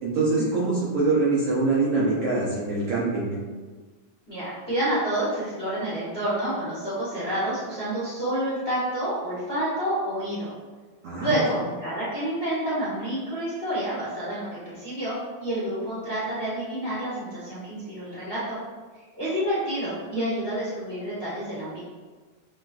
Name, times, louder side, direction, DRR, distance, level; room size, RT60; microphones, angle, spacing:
voice 1, 0.0-3.3 11.0-11.4, right 3 dB, 75° right, -6 dB, 1.4 m, -24 dB
voice 2, 4.3-10.5 11.1-18.6 19.2-21.8, right 1 dB, 80° left, -11 dB, 0.5 m, -29 dB
7.3 x 2.4 x 2.3 m, 1.4 s
omnidirectional pair, 3.4 m